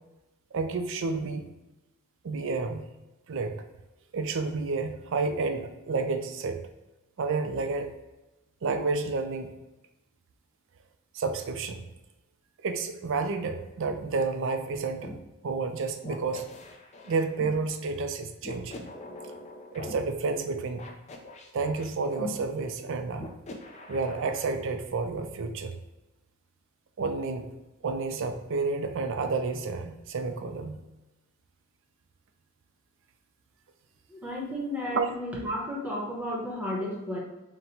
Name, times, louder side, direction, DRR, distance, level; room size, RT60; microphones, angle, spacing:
voice 1, 0.5-1.5 2.2-2.9 3.3-3.6 4.1-6.6 7.2-7.9 8.6-9.5 11.1-11.8 12.6-15.1 15.4-16.4 17.1-18.9 19.7-20.8 21.5-23.3 23.9-25.7 27.0-27.5 27.8-30.8 34.9-35.1, right 4 dB, 60° right, 7 dB, 0.4 m, -30 dB
sound 1, 15.0-15.2 16.0-17.6 18.4-19.9 20.8-22.3 23.2-24.5, left 2 dB, 30° left, 0.4 m, -42 dB
voice 2, 34.1-37.2, left 1 dB, 5° right, -4 dB, 0.9 m, -33 dB
4.0 x 2.2 x 4.2 m, 1.0 s
head